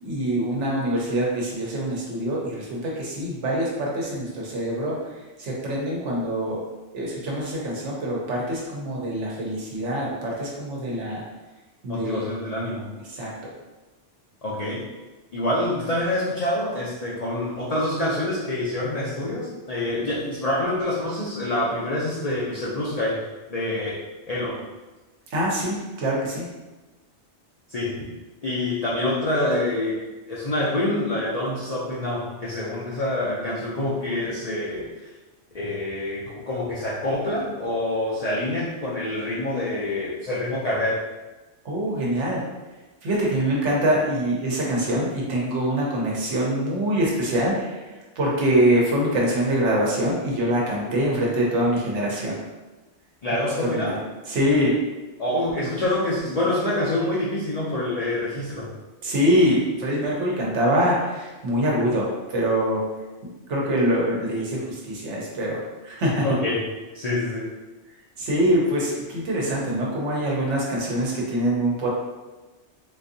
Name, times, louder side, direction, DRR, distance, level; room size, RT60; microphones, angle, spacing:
voice 1, 0.0-6.6 6.9-11.2 11.8-12.3 13.1-13.5 25.3-26.5 41.6-42.4 43.0-47.8 48.2-52.3 53.6-53.9 54.3-54.8 59.0-62.8 63.5-66.4 68.2-71.9, equal, 80° right, -3 dB, 1.0 m, -24 dB
voice 2, 11.9-12.9 14.4-14.8 15.3-23.2 23.5-24.0 24.3-24.6 27.7-28.0 28.4-30.0 30.3-35.1 35.5-41.0 53.2-54.0 55.2-58.7 66.2-66.6 66.9-67.5, left 1 dB, 50° left, -6 dB, 0.5 m, -26 dB
3.8 x 2.6 x 2.6 m, 1.2 s
omnidirectional pair, 1.2 m